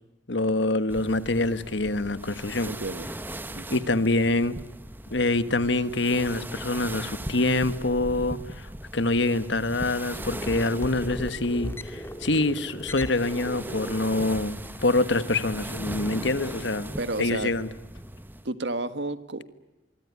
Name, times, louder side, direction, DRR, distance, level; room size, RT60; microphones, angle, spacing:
voice 1, 0.3-2.7 3.7-4.6 5.1-16.9 17.2-17.7, left 2 dB, 70° left, 13 dB, 1.5 m, -25 dB
sound 1, 0.9-18.5, right 1 dB, 10° right, 1.1 m, -39 dB
voice 2, 2.7-3.1 3.5-3.8 17.0-17.5 18.4-19.5, right 2 dB, 65° right, 12 dB, 1.7 m, -31 dB
sound 2, 10.1-15.6, equal, 15° left, 1.9 m, -39 dB
24.5 x 24.0 x 9.7 m, 0.96 s
head